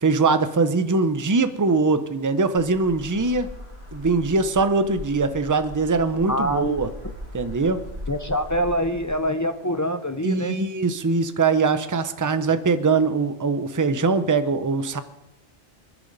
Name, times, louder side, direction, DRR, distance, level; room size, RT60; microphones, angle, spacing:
voice 1, 0.0-3.5 3.9-6.9 7.3-7.8 10.2-15.0, right 4 dB, 20° right, 11 dB, 0.6 m, -22 dB
sound 1, 2.5-9.2, left 1 dB, 45° right, 5.1 m, -39 dB
voice 2, 6.3-6.8 8.1-10.6, equal, 20° left, 8 dB, 0.6 m, -25 dB
27.0 x 10.5 x 4.1 m, 0.95 s
omnidirectional pair, 1.2 m